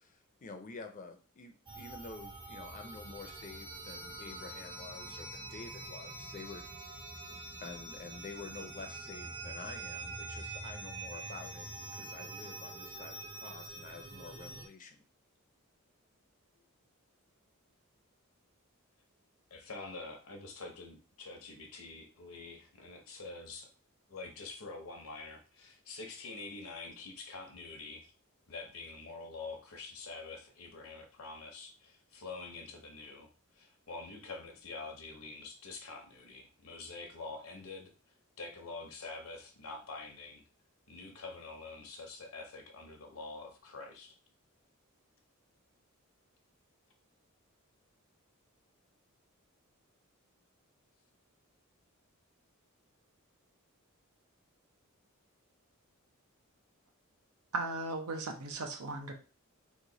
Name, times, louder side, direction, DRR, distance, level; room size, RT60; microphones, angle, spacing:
voice 1, 0.0-6.6 7.6-11.7 11.9-15.0, left 4 dB, 40° left, 5 dB, 0.5 m, -48 dB
sound 1, 1.7-14.7, right 2 dB, 25° right, 0.5 m, -45 dB
voice 2, 19.5-23.7 24.1-28.1 28.5-33.3 33.5-40.4 40.9-44.1, left 3 dB, 70° left, 4 dB, 0.7 m, -46 dB
voice 3, 57.5-59.1, right 2 dB, 90° right, 4 dB, 0.7 m, -37 dB
3.0 x 2.2 x 3.8 m, 0.37 s
head